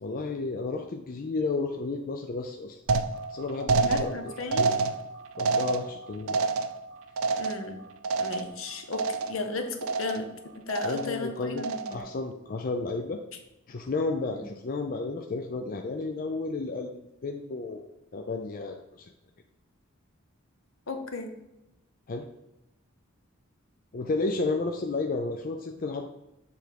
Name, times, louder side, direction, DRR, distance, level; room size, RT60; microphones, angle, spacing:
voice 1, 0.0-2.8 3.3-4.3 5.4-6.4 10.8-11.6 11.9-13.2 13.7-17.8 18.1-19.1 22.1-22.3 23.9-26.1, left 3 dB, 40° left, 3 dB, 0.4 m, -32 dB
sound 1, 2.9-8.7 8.9-9.5 9.8-10.4 10.7-11.2 11.6-12.1, right 4 dB, 75° right, 0.5 m, -29 dB
voice 2, 3.8-4.7 7.4-7.8 8.2-10.3 10.5-12.0 14.3-14.5 20.9-21.3, left 3 dB, 70° left, 6 dB, 0.9 m, -35 dB
7.0 x 3.4 x 4.6 m, 0.89 s
head